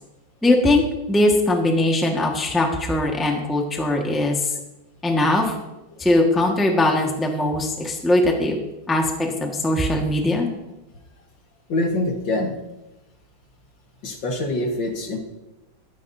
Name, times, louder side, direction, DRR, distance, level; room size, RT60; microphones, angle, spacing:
voice 1, 0.4-0.8 1.1-4.4 5.0-5.5 6.0-8.6 8.9-10.5, left 1 dB, ahead, 1 dB, 1.3 m, -20 dB
voice 2, 11.7-12.5 14.0-15.2, left 1 dB, 65° left, 2 dB, 2.3 m, -24 dB
22.5 x 9.6 x 2.8 m, 0.99 s
omnidirectional pair, 2.2 m